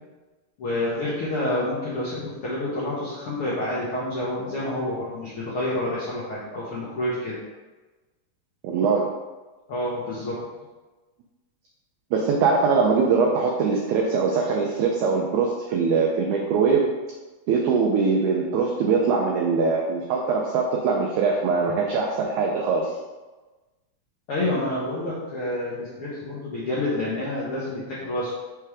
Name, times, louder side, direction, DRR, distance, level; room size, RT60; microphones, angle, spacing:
voice 1, 0.6-7.4 9.7-10.4 24.3-28.3, left 1 dB, 75° left, -7 dB, 1.2 m, -28 dB
voice 2, 8.6-9.1 12.1-16.9 17.5-22.9, right 5 dB, 90° right, 0 dB, 1.6 m, -22 dB
5.9 x 3.4 x 4.8 m, 1.2 s
omnidirectional pair, 4.1 m